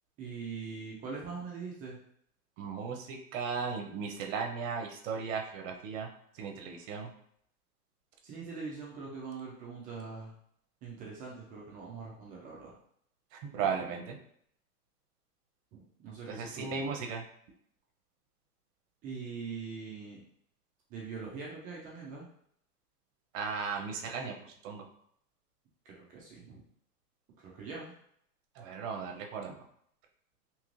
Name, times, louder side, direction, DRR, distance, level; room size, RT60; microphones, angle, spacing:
voice 1, 0.2-2.0 8.2-10.3 10.8-12.7 15.7-16.9 19.0-20.2 20.9-22.3 25.9-26.6 27.4-27.9, right 5 dB, 20° right, -4 dB, 0.3 m, -42 dB
voice 2, 2.6-6.1 6.4-7.1 13.5-14.2 16.3-17.2 23.3-24.3 24.6-24.8 28.6-29.6, right 5 dB, 55° right, 3 dB, 0.7 m, -36 dB
3.0 x 2.4 x 3.0 m, 0.68 s
hypercardioid pair, 115°, 46 cm